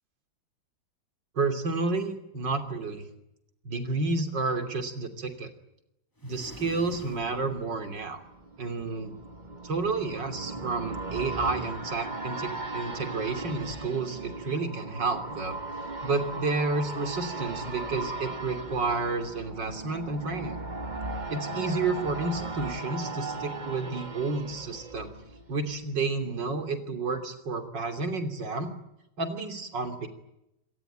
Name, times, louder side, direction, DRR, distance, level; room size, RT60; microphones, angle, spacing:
voice 1, 1.4-3.1 3.7-5.5 6.2-8.2 8.6-9.1 9.6-15.6 16.0-20.6 21.3-25.1 25.5-28.7 29.2-30.1, right 3 dB, 65° right, 8 dB, 3.7 m, -30 dB
sound 1, 6.2-8.8, left 2 dB, 10° left, 1.6 m, -48 dB
sound 2, 8.0-25.8 26.1-26.2, right 2 dB, 25° right, 1.7 m, -37 dB
26.0 x 19.0 x 9.3 m, 0.85 s
omnidirectional pair, 2.1 m